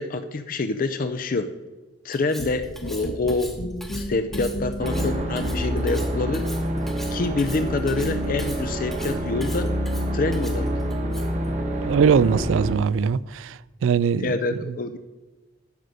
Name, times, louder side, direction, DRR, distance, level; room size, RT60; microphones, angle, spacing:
voice 1, 0.0-1.5 2.0-3.5 3.9-6.5 7.1-9.7 10.1-10.7 14.2-15.0, left 3 dB, 45° left, 0.4 m, -26 dB
Cutlery silverware, 2.1-11.5, left 1 dB, ahead, 0.9 m, -42 dB
sound 1, 2.4-5.9, equal, 60° left, 1.1 m, -33 dB
sound 2, 4.8-12.8, equal, 35° right, 1.1 m, -27 dB
voice 2, 11.8-13.6 13.8-14.3, right 6 dB, 80° right, 0.3 m, -21 dB
12.0 x 4.9 x 6.6 m
head